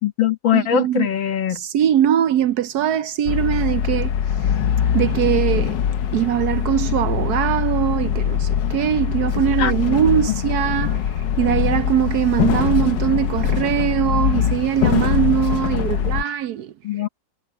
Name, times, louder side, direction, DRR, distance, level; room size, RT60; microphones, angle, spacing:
voice 1, 0.0-1.6 9.6-9.7 10.3-10.4 16.8-17.1, left 10 dB, 85° left, 2.3 m, -21 dB
voice 2, 0.5-1.1 1.5-4.1 4.9-5.8 6.1-11.0 11.4-16.7, right 10 dB, 65° right, 1.0 m, -21 dB
sound 1, 3.3-16.2, left 9 dB, 70° left, 1.5 m, -22 dB
omnidirectional pair, 2.0 m